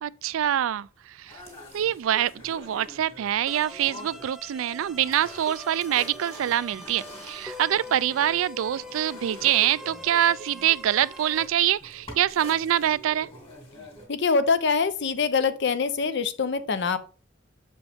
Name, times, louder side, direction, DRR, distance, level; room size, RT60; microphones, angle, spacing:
voice 1, 0.0-1.4 1.7-13.3, right 11 dB, 80° right, 0.3 m, -25 dB
sound 1, 1.2-14.1, equal, 30° left, 2.5 m, -46 dB
sound 2, 3.5-11.5, left 1 dB, 5° right, 0.3 m, -43 dB
voice 2, 14.1-17.0, left 5 dB, 60° left, 0.6 m, -24 dB
6.5 x 5.2 x 3.5 m
head